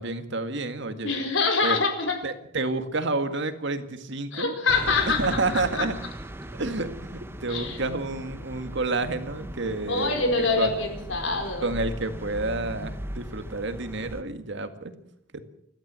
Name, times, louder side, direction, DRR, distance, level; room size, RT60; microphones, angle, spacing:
voice 1, 0.0-1.2 1.6-1.8 2.2-4.6 5.2-5.9 6.6-10.7 11.6-14.9, right 2 dB, 65° right, 9 dB, 2.0 m, -29 dB
voice 2, 1.0-2.2 4.3-5.9 7.5-7.8 9.9-11.7, left 4 dB, 65° left, 4 dB, 4.5 m, -25 dB
sound 1, 4.7-14.2, right 1 dB, 10° right, 1.0 m, -38 dB
28.5 x 12.5 x 7.7 m, 0.74 s
head